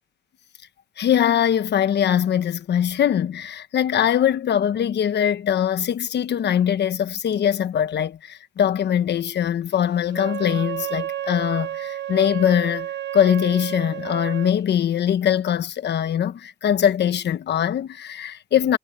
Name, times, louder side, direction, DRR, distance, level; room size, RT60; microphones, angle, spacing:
voice 1, 1.0-18.8, left 9 dB, 60° left, 1.2 m, -22 dB
Wind instrument woodwind instrument, 10.1-14.5, right 12 dB, 65° right, 1.2 m, -31 dB
cardioid pair, 90°, 20 cm